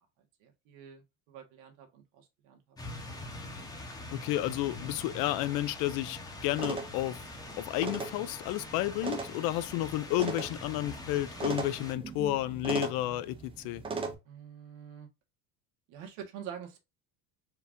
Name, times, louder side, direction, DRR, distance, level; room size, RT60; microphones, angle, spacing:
voice 1, 0.2-2.8 3.1-3.3 14.2-15.1 15.9-16.8, right 8 dB, 90° right, 1.6 m, -47 dB
sound 1, 2.8-11.9, left 2 dB, 10° left, 0.7 m, -44 dB
voice 2, 4.1-7.2 7.6-13.8, left 15 dB, 60° left, 0.5 m, -31 dB
sound 2, 6.5-14.1, right 4 dB, 15° right, 0.4 m, -39 dB
4.5 x 2.6 x 3.5 m
cardioid pair, 170°, 41 cm